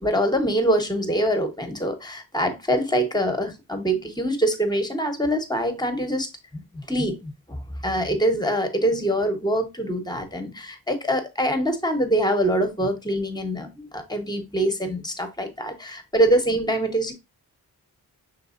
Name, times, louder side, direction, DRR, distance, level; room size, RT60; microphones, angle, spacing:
voice 1, 0.0-17.1, right 1 dB, 10° left, 0.9 m, -24 dB
6.0 x 3.6 x 2.4 m
wide cardioid pair, 95°, 38 cm